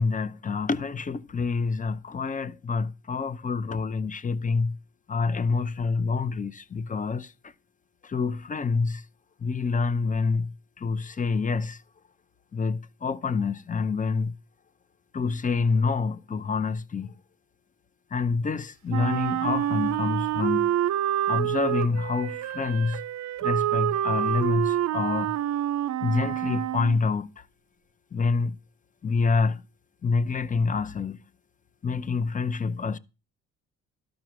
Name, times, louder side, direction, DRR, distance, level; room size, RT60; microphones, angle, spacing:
voice 1, 0.0-4.8 5.1-7.5 8.0-9.0 9.4-11.8 12.5-14.4 15.1-17.1 18.1-20.8 21.3-23.0 23.4-25.4 26.0-27.4 28.1-28.6 29.0-29.6 30.0-31.2 31.8-33.0, left 4 dB, 25° left, 0.6 m, -27 dB
Wind instrument woodwind instrument, 18.9-27.0, right 12 dB, 65° right, 0.6 m, -27 dB
12.5 x 5.2 x 6.0 m
cardioid pair, 90°, 30 cm